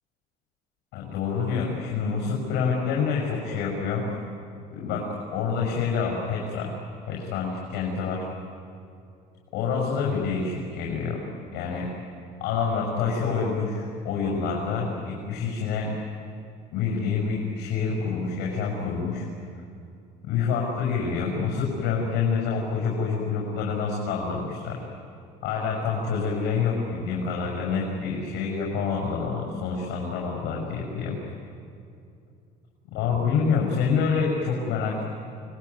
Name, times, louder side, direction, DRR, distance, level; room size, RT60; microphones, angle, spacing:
voice 1, 0.9-4.1 4.7-6.8 7.1-8.2 9.5-11.3 11.5-11.9 12.4-15.9 16.7-19.3 20.2-24.8 25.4-31.2 32.9-35.0, left 5 dB, 75° left, -2 dB, 6.4 m, -27 dB
28.5 x 21.0 x 9.7 m, 2.4 s
cardioid pair, 150°, 17 cm